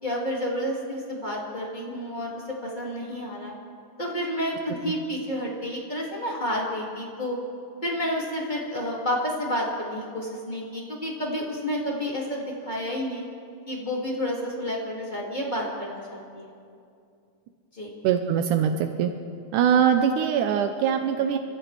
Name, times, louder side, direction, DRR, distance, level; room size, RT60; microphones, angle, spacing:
voice 1, 0.0-3.5 4.0-7.4 7.8-13.2 13.7-16.5 17.7-17.9, equal, 15° left, -4 dB, 1.8 m, -30 dB
voice 2, 18.0-19.1 19.5-21.4, right 8 dB, 80° right, 6 dB, 2.1 m, -22 dB
29.5 x 14.0 x 3.3 m, 2.4 s
omnidirectional pair, 3.7 m